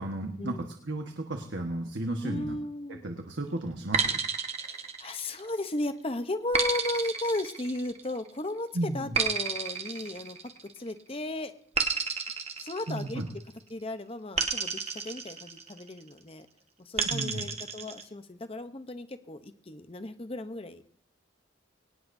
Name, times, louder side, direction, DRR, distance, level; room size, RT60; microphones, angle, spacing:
voice 1, 0.0-2.6 2.9-4.1 8.7-9.2 12.9-13.3 17.0-17.4, right 1 dB, 60° right, 3 dB, 1.3 m, -34 dB
voice 2, 2.2-3.0 4.5-10.4 10.7-11.5 12.6-13.2 13.7-16.5 16.8-20.8, left 1 dB, 30° left, 9 dB, 0.7 m, -35 dB
sound 1, 3.9-5.6 6.5-8.2 9.2-10.9 11.8-13.5 14.4-15.9 17.0-18.0, right 5 dB, 30° right, 1.1 m, -31 dB
22.5 x 18.5 x 2.7 m, 0.66 s
head